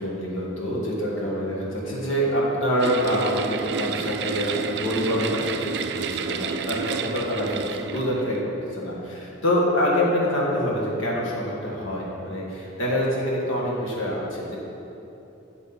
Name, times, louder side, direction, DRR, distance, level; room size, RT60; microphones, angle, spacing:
voice 1, 0.0-14.6, equal, 90° left, -4 dB, 2.1 m, -26 dB
sound 1, 2.8-8.4, right 6 dB, 55° right, 0.4 m, -30 dB
11.0 x 7.1 x 4.4 m, 2.9 s
head